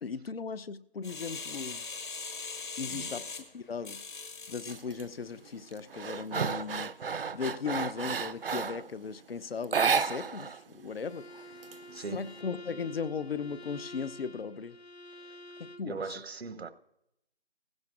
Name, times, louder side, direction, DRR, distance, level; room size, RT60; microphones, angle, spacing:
voice 1, 0.0-1.8 2.8-4.0 4.5-6.9 7.3-11.3 12.1-14.8 15.6-16.0, left 5 dB, 65° left, 0.7 m, -37 dB
sound 1, 1.0-4.8 5.3-5.4, left 4 dB, 50° left, 1.6 m, -40 dB
voice 2, 2.9-3.2 11.6-12.5 15.2-15.4 15.8-16.7, right 4 dB, 80° right, 0.9 m, -41 dB
sound 2, 4.7-5.0 5.5-8.9 9.6-10.6 10.8-10.9 11.3-12.3, right 6 dB, 65° right, 0.6 m, -32 dB
Bowed string instrument, 11.0-15.9, left 1 dB, 90° left, 1.0 m, -49 dB
18.0 x 16.0 x 2.4 m
figure-of-eight pair, 165°, 31 cm